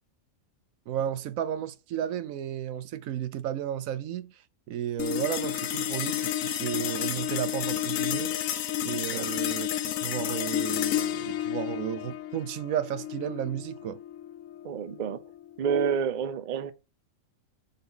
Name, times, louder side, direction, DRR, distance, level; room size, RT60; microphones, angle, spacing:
voice 1, 0.9-4.3 4.7-8.3 8.8-14.0, right 10 dB, 80° right, 1.0 m, -33 dB
sound 1, 5.0-15.6, left 11 dB, 80° left, 1.0 m, -31 dB
voice 2, 14.6-15.2 15.6-16.7, right 7 dB, 50° right, 0.5 m, -28 dB
4.5 x 4.1 x 5.4 m
omnidirectional pair, 1.4 m